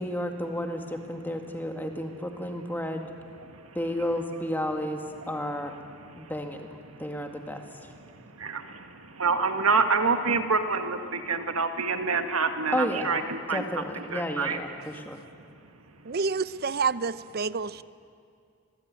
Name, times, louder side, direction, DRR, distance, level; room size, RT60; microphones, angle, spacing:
voice 1, 0.0-3.1 3.8-5.7 6.2-6.7 7.0-7.6 12.7-13.1 13.5-15.2, equal, 10° left, 1.9 m, -32 dB
voice 2, 9.2-11.0 11.3-13.6 14.0-14.6, right 4 dB, 85° right, 1.9 m, -26 dB
voice 3, 16.1-17.8, right 4 dB, 45° right, 0.6 m, -28 dB
25.5 x 20.0 x 9.6 m
head